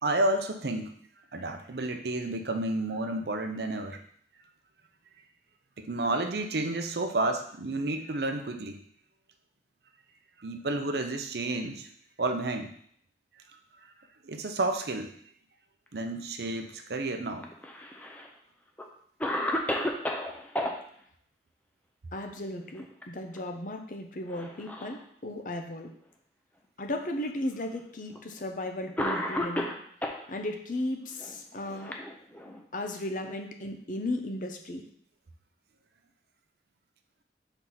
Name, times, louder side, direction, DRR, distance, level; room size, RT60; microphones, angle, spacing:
voice 1, 0.0-0.9 1.3-4.0 5.8-8.8 10.4-11.9 12.2-12.7 14.2-15.1 15.9-17.5, right 2 dB, 65° right, 6 dB, 0.7 m, -31 dB
Cough, 17.4-18.3 18.8-18.9 19.2-20.7 22.6-23.0 23.4-23.5 24.3-25.0 25.8-25.9 26.9-27.0 28.2-28.3 29.0-30.2 31.2-32.6, left 1 dB, 10° left, 0.6 m, -32 dB
voice 2, 22.1-25.9 26.8-29.7 30.3-31.9 32.7-34.9, left 1 dB, 45° left, 4 dB, 0.8 m, -35 dB
5.9 x 4.5 x 4.0 m, 0.62 s
head